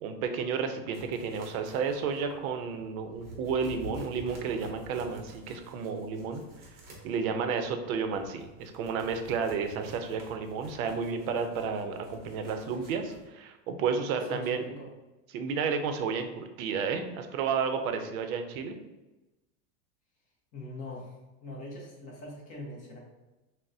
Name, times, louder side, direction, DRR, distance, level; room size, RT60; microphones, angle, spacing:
voice 1, 0.0-6.4 7.0-14.6 15.3-18.7, right 5 dB, 60° right, 7 dB, 0.6 m, -32 dB
sound 1, 0.9-13.2, left 1 dB, 20° right, 0.7 m, -49 dB
voice 2, 14.2-14.9 20.5-21.1 21.4-23.0, left 2 dB, 15° left, -3 dB, 0.5 m, -42 dB
6.0 x 2.1 x 2.6 m, 1.1 s
supercardioid pair, 160°, 47 cm